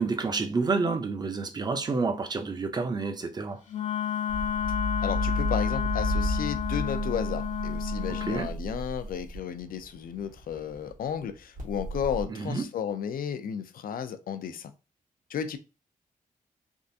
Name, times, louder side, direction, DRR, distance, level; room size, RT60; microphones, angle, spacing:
voice 1, 0.0-3.6 8.3-8.5 12.3-12.7, right 4 dB, 30° right, 0.5 m, -29 dB
Wind instrument woodwind instrument, 3.7-8.5, left 9 dB, 60° left, 0.7 m, -31 dB
sound 1, 4.3-10.9 11.6-12.2, equal, 75° right, 1.2 m, -32 dB
voice 2, 5.0-14.7 15.3-15.6, left 8 dB, 85° left, 0.4 m, -33 dB
3.5 x 2.4 x 2.6 m
wide cardioid pair, 135°, 14 cm